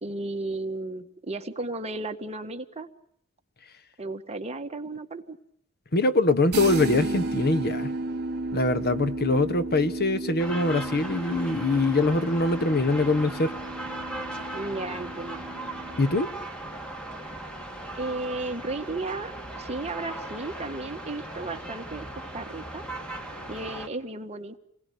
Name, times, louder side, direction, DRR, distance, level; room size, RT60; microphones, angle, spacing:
voice 1, 0.0-2.9 4.0-5.4 14.5-15.4 17.9-22.8 23.5-24.6, right 2 dB, 30° right, 1.7 m, -34 dB
voice 2, 5.9-7.9 8.5-13.5 16.0-16.3, left 2 dB, 45° left, 1.2 m, -23 dB
sound 1, 6.5-16.1, right 2 dB, 50° right, 2.3 m, -34 dB
sound 2, 10.4-23.9, right 1 dB, 5° left, 3.1 m, -38 dB
28.5 x 21.0 x 9.5 m
head